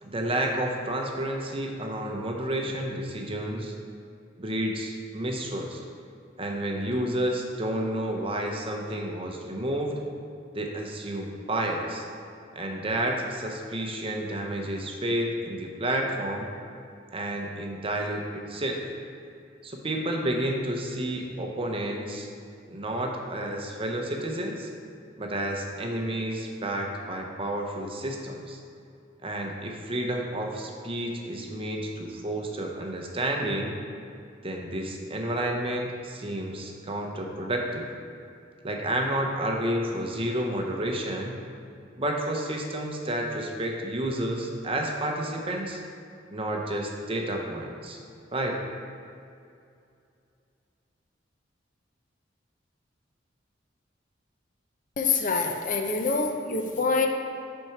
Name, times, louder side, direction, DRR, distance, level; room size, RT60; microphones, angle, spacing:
voice 1, 0.0-3.7 4.4-5.8 6.4-10.0 10.5-12.0 12.5-16.5 17.1-18.8 19.6-22.3 22.7-24.7 25.2-28.6 29.2-33.8 34.4-37.9 38.6-41.4 42.0-45.8 46.3-48.0 48.3-48.6, right 1 dB, 30° right, 1 dB, 0.7 m, -30 dB
voice 2, 55.0-57.1, left 4 dB, 45° left, 3 dB, 0.6 m, -25 dB
6.0 x 4.5 x 5.8 m, 2.4 s
head